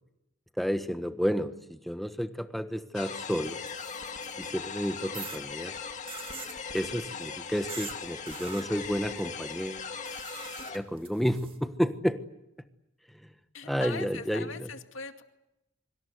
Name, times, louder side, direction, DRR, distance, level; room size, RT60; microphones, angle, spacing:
voice 1, 0.6-3.6 4.4-5.7 6.7-9.8 10.7-12.2 13.2-13.3 13.6-14.7, equal, ahead, 9 dB, 1.3 m, -31 dB
sound 1, 2.9-10.8, left 5 dB, 40° left, 2.0 m, -39 dB
sound 2, 3.4-4.5 5.1-5.4 6.1-6.6 7.7-8.0 8.3-8.6 10.0-11.6, right 6 dB, 30° right, 2.4 m, -43 dB
voice 2, 13.5-15.2, left 4 dB, 75° left, 6 dB, 2.3 m, -40 dB
25.5 x 24.5 x 8.1 m, 0.89 s
head